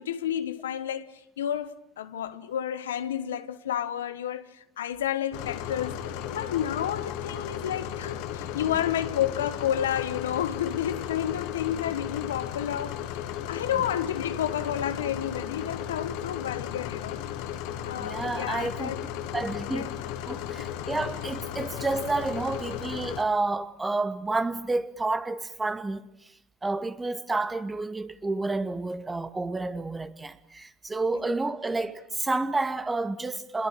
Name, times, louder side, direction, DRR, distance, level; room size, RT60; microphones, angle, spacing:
voice 1, 0.0-13.1 13.5-17.2 17.8-19.0 19.6-19.9 20.6-20.7, left 10 dB, 85° left, 1.2 m, -31 dB
sound 1, 5.3-23.2, left 9 dB, 70° left, 1.8 m, -35 dB
voice 2, 18.0-19.9 20.3-26.3 26.6-33.7, right 3 dB, 20° right, 2.1 m, -30 dB
27.5 x 22.0 x 9.0 m
hypercardioid pair, 70°, 0 cm